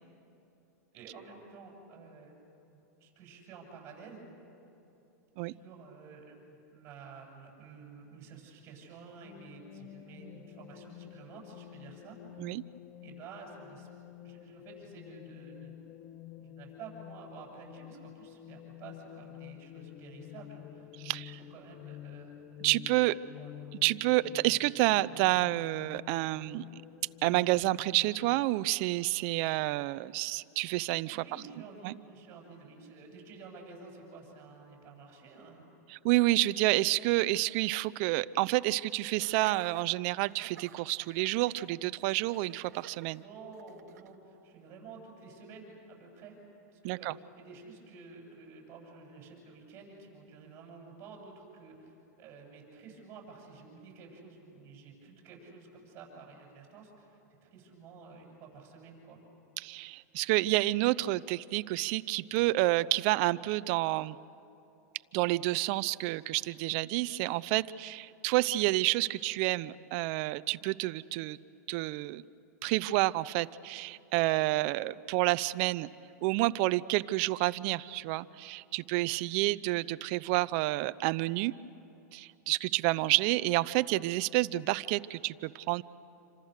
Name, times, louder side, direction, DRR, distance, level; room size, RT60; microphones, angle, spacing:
voice 1, 0.9-2.3 2.7-4.3 5.4-12.4 13.0-13.9 14.2-15.7 16.4-20.9 21.5-22.4 23.0-23.5 24.2-24.4 31.1-35.7 43.1-46.3 46.7-59.2 79.3-79.5, right 4 dB, 30° right, 0 dB, 7.9 m, -51 dB
sound 1, 9.2-28.4, left 12 dB, 35° left, 0.7 m, -49 dB
voice 2, 21.0-21.4 22.6-23.2 23.8-26.8 27.2-31.2 31.8-31.9 35.9-43.2 46.8-47.1 59.6-64.2 65.1-71.4 71.7-72.2 72.6-75.9 76.2-81.5 82.1-85.8, right 19 dB, 45° right, 16 dB, 0.6 m, -29 dB
Laughter, 39.2-44.1, right 10 dB, 75° right, 1.3 m, -53 dB
28.0 x 26.5 x 6.6 m, 2.9 s
supercardioid pair, 145°, 9 cm